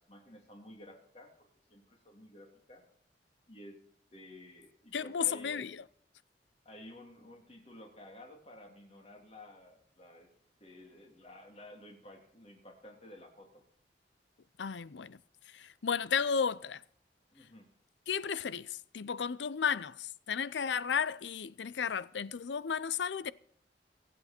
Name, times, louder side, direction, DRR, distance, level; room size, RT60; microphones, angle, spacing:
voice 1, 0.0-2.8 3.5-3.8 4.1-5.7 6.6-10.3 10.6-13.6 17.3-17.7, left 1 dB, 35° left, 3.0 m, -53 dB
voice 2, 4.9-5.8 14.6-15.2 15.5-16.8 18.1-23.3, left 6 dB, 85° left, 0.5 m, -33 dB
23.5 x 8.4 x 4.4 m
head